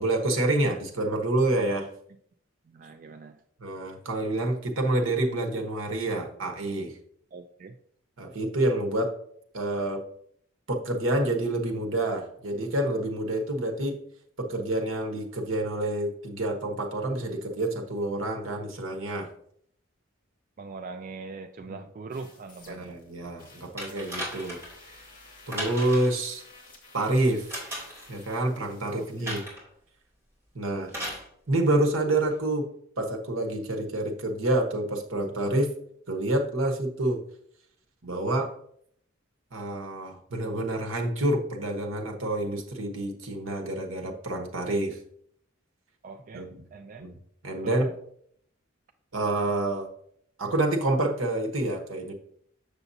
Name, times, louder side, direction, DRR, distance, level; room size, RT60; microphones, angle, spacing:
voice 1, 0.0-1.9 3.6-7.0 8.2-9.1 9.5-10.0 10.7-14.0 14.4-19.3 21.7-21.8 22.7-24.6 24.9-25.0 25.5-26.4 26.9-27.5 28.1-29.4 30.5-30.9 31.5-32.7 33.0-35.7 36.1-37.2 38.0-38.5 39.5-45.0 46.3-46.6 47.0-47.1 47.4-47.9 49.1-49.9 50.4-52.1, right 1 dB, 75° right, 3 dB, 1.1 m, -28 dB
voice 2, 2.6-3.4 7.3-7.8 20.6-23.0 29.0-29.3 46.0-47.1 47.6-47.9, right 4 dB, 40° right, 6 dB, 0.3 m, -42 dB
sound 1, 22.1-23.1 23.4-29.3, left 3 dB, 40° left, 2.1 m, -53 dB
sound 2, 23.8-24.8 25.5-26.2 27.5-28.1 29.3-29.7 30.9-31.3 32.3-32.4, equal, 15° right, 2.6 m, -36 dB
6.9 x 6.8 x 2.7 m, 0.68 s
head